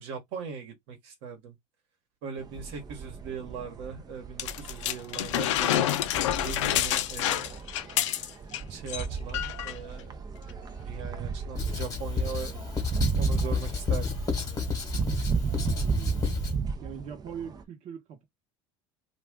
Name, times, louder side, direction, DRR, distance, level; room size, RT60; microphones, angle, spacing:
voice 1, 0.0-1.6 2.2-5.9 6.4-7.7 8.7-10.2 10.8-12.6 13.2-14.2, right 6 dB, 70° right, 1.2 m, -39 dB
sound 1, 2.4-17.6, right 5 dB, 25° right, 0.5 m, -34 dB
sound 2, 4.4-8.6 8.9-9.1 9.3-9.8 10.5-10.6, left 12 dB, 85° left, 0.4 m, -28 dB
Writing, 11.5-16.6, left 6 dB, 25° left, 1.2 m, -31 dB
voice 2, 15.7-16.3 16.8-18.2, right 8 dB, 50° right, 1.0 m, -41 dB
2.4 x 2.3 x 3.5 m
hypercardioid pair, 90°, 15 cm